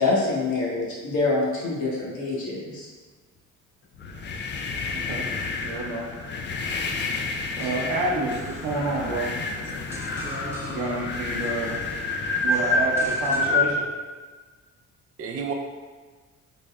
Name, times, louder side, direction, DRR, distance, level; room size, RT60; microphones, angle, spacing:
voice 1, 0.0-2.9, left 3 dB, 70° left, -5 dB, 1.2 m, -25 dB
sound 1, 4.0-13.8, left 3 dB, 40° left, 0.4 m, -28 dB
voice 2, 4.9-5.3 5.6-6.1 7.6-9.3 10.7-11.7 12.4-13.9, right 2 dB, 85° right, -3 dB, 0.7 m, -28 dB
sound 2, 7.6-13.5, right 1 dB, 10° right, 0.6 m, -42 dB
voice 3, 13.4-13.9 15.2-15.5, right 5 dB, 50° right, 1 dB, 0.6 m, -33 dB
4.0 x 2.0 x 3.4 m, 1.4 s
cardioid pair, 90°, 30 cm